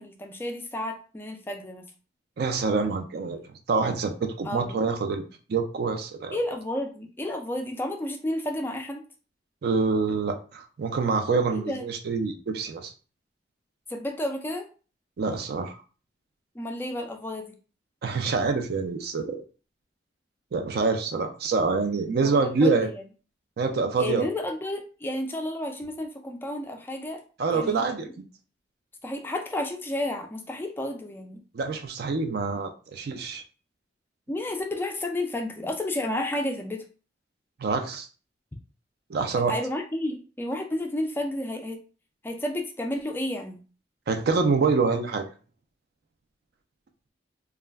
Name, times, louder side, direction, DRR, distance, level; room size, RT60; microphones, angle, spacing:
voice 1, 0.0-1.9 4.4-4.9 6.3-9.0 11.5-11.8 13.9-14.7 16.6-17.6 22.2-23.0 24.0-27.2 27.5-27.8 29.0-31.4 34.3-36.8 39.5-41.8 42.2-43.6, left 1 dB, 10° left, 3 dB, 0.3 m, -31 dB
voice 2, 2.4-3.4 3.7-5.2 5.5-6.4 9.6-12.9 15.2-15.8 18.0-19.4 20.5-22.9 23.6-24.3 27.4-28.2 31.5-33.4 37.6-38.1 39.1-39.5 44.1-45.2, right 4 dB, 60° right, 6 dB, 0.4 m, -26 dB
2.3 x 2.1 x 3.3 m, 0.37 s
head